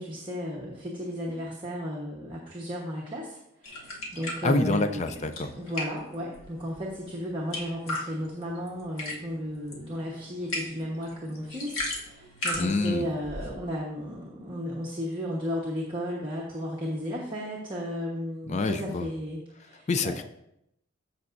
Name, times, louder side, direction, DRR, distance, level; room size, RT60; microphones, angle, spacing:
voice 1, 0.0-3.4 3.6-5.1 5.5-20.2, equal, 20° right, -5 dB, 1.2 m, -34 dB
sound 1, 3.6-13.5, left 1 dB, 75° left, 1.9 m, -38 dB
voice 2, 4.4-5.5 12.6-13.1 18.5-19.1 19.9-20.2, left 3 dB, 30° left, 9 dB, 0.4 m, -27 dB
14.5 x 5.7 x 2.6 m, 0.78 s
head